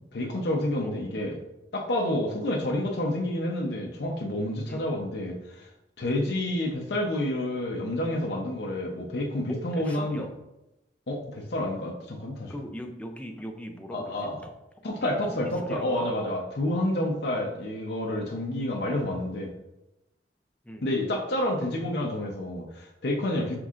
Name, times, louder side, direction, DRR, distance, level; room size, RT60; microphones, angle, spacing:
voice 1, 0.1-1.4 1.7-5.7 6.0-10.2 11.1-12.5 13.9-14.4 14.8-19.5 20.8-23.6, left 1 dB, 65° left, 0 dB, 0.7 m, -29 dB
voice 2, 9.5-10.3 12.5-16.4 16.7-16.8 20.6-20.9, equal, 10° left, 4 dB, 0.4 m, -40 dB
6.0 x 3.5 x 2.5 m, 0.94 s
head